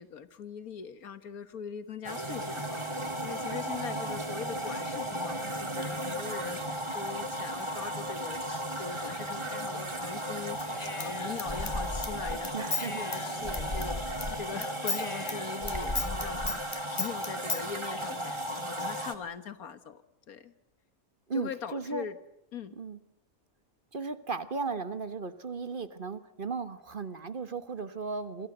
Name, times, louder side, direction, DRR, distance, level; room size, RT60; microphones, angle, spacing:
voice 1, 0.0-20.0 20.3-20.5 21.3-22.2 22.5-22.8, left 7 dB, 90° left, 12 dB, 1.8 m, -41 dB
sound 1, 2.0-19.1, right 1 dB, 20° right, 1.9 m, -35 dB
Human voice / Scissors, 10.6-14.3 14.6-17.6, left 3 dB, 30° left, 1.6 m, -35 dB
voice 2, 12.5-13.2 21.3-22.1 22.8-23.0 23.9-28.5, right 4 dB, 40° right, 11 dB, 1.3 m, -36 dB
28.5 x 24.5 x 8.0 m, 0.82 s
omnidirectional pair, 1.5 m